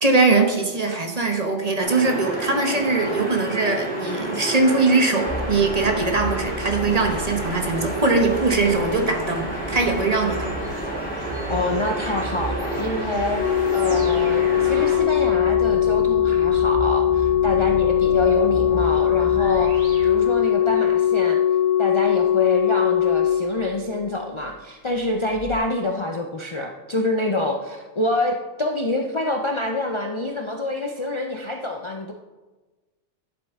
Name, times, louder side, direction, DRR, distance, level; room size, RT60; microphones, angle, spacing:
voice 1, 0.0-10.5, right 3 dB, 35° right, 3 dB, 1.1 m, -21 dB
sound 1, 1.8-15.0, right 1 dB, 5° left, 2.7 m, -30 dB
sound 2, 5.3-20.9, equal, 80° right, 2.0 m, -34 dB
voice 2, 11.5-21.4 21.8-32.1, left 2 dB, 35° left, 2 dB, 0.5 m, -26 dB
Organ, 13.4-24.2 25.4-25.6, left 10 dB, 80° left, 1.0 m, -20 dB
11.5 x 7.4 x 3.6 m, 1.2 s
omnidirectional pair, 1.2 m